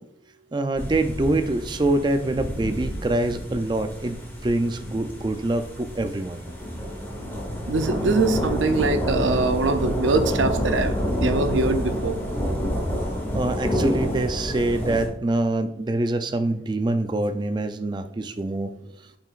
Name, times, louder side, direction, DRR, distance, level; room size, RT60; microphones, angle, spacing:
voice 1, 0.5-6.4 13.3-18.7, right 2 dB, 25° right, 9 dB, 0.4 m, -25 dB
sound 1, 0.8-15.1, equal, 10° left, 1.3 m, -28 dB
voice 2, 7.7-10.9 11.2-12.2, right 3 dB, 90° right, 8 dB, 0.6 m, -23 dB
8.6 x 5.6 x 2.4 m, 0.78 s
head